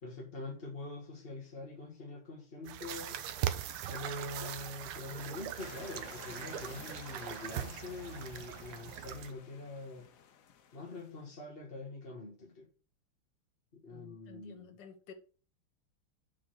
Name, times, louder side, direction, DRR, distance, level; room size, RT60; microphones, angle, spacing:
voice 1, 0.0-3.2 3.9-10.1 10.7-12.7 13.7-14.8, left 2 dB, 30° left, 1.6 m, -44 dB
sound 1, 2.6-9.3, right 11 dB, 80° right, 1.7 m, -40 dB
sound 2, 3.0-9.0, right 3 dB, 35° right, 0.4 m, -57 dB
sound 3, 5.6-11.3, left 8 dB, 85° left, 0.7 m, -54 dB
voice 2, 13.9-15.1, left 7 dB, 60° left, 1.7 m, -52 dB
7.7 x 3.8 x 6.4 m
omnidirectional pair, 2.4 m